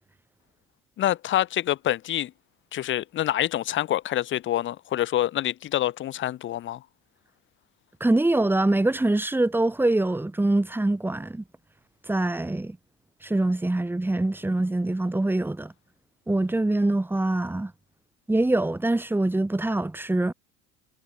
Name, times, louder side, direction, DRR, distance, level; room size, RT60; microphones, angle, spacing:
voice 1, 1.0-2.3 2.7-6.8, left 12 dB, 40° left, 1.3 m, -26 dB
voice 2, 8.0-11.4 12.1-12.8 13.2-15.7 16.3-17.7 18.3-20.3, right 2 dB, 5° right, 3.1 m, -24 dB
supercardioid pair, 110°, 29 cm